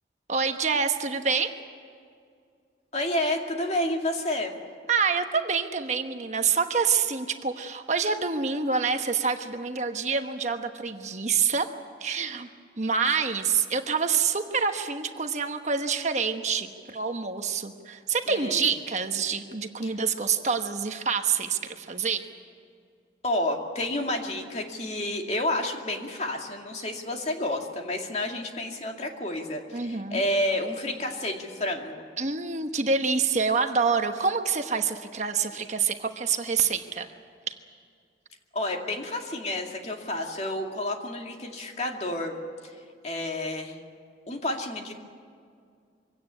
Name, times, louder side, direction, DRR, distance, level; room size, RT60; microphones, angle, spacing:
voice 1, 0.3-1.6 4.9-11.7 12.0-12.5 12.8-22.3 29.7-30.2 32.2-37.1 37.5-37.6, right 5 dB, 40° right, 6 dB, 1.2 m, -27 dB
voice 2, 2.9-4.5 18.3-18.7 19.8-19.9 23.2-32.0 38.5-42.4 43.0-43.8 44.3-44.9, left 1 dB, 40° left, 2 dB, 2.4 m, -30 dB
24.0 x 17.0 x 9.8 m, 2.2 s
head